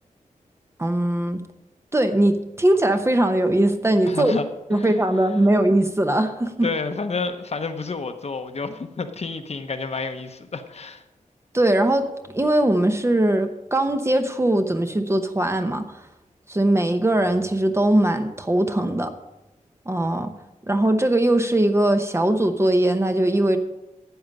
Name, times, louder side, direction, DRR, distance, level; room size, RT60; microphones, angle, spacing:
voice 1, 0.8-1.4 1.9-4.4 4.7-6.7 11.5-12.1 12.3-15.8 16.5-19.1 19.9-20.3 20.7-23.6, right 1 dB, 20° right, 7 dB, 0.8 m, -20 dB
voice 2, 4.1-4.5 4.7-5.0 5.5-5.6 6.6-11.0, left 4 dB, 50° left, 7 dB, 0.9 m, -29 dB
12.5 x 8.6 x 5.4 m, 0.97 s
wide cardioid pair, 130°, 14 cm